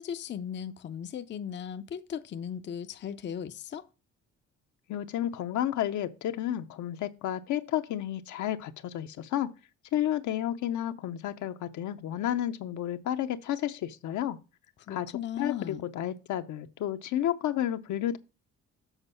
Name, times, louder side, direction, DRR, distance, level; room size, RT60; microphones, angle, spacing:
voice 1, 0.0-3.9 14.9-15.8, left 9 dB, 40° left, 0.5 m, -37 dB
voice 2, 4.9-9.5 9.9-14.4 14.9-15.1 15.4-18.2, left 11 dB, 75° left, 0.7 m, -31 dB
7.3 x 4.1 x 6.7 m
cardioid pair, 90°, 30 cm